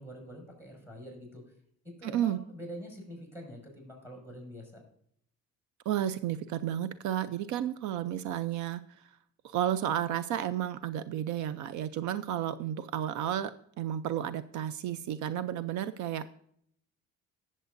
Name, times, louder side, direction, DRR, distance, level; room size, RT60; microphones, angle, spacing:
voice 1, 0.0-1.4 2.0-4.8, equal, 10° right, 0 dB, 5.2 m, -45 dB
voice 2, 2.0-2.4 5.9-9.1 9.4-13.5 13.8-16.3, right 11 dB, 75° right, 14 dB, 0.6 m, -32 dB
18.5 x 7.5 x 2.6 m, 0.67 s
cardioid pair, 135°, 29 cm